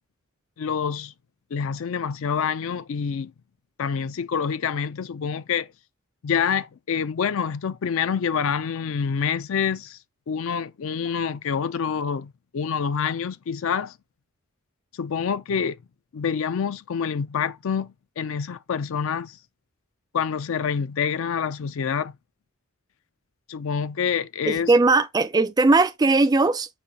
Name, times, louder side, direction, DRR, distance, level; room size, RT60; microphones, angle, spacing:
voice 1, 0.6-1.1 1.5-3.3 3.8-5.7 6.2-10.0 10.3-13.9 15.0-15.8 16.1-19.4 20.1-22.1 23.5-24.7, left 6 dB, 60° left, 0.4 m, -27 dB
voice 2, 24.5-26.7, right 3 dB, 15° right, 0.3 m, -19 dB
5.2 x 2.5 x 4.0 m
head